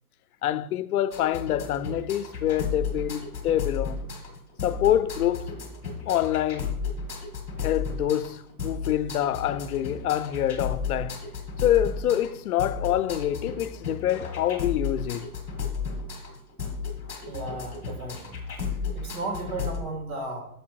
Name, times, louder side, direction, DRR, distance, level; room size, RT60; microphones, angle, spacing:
voice 1, 0.4-4.0 4.6-5.5 6.1-6.7 7.6-11.2 11.6-15.3, left 11 dB, 80° left, 0.6 m, -26 dB
sound 1, 1.1-19.8, left 5 dB, 5° right, 0.4 m, -34 dB
voice 2, 17.3-18.4 18.9-20.4, right 2 dB, 70° right, 2.6 m, -34 dB
6.7 x 5.2 x 4.6 m
hypercardioid pair, 150°, 44 cm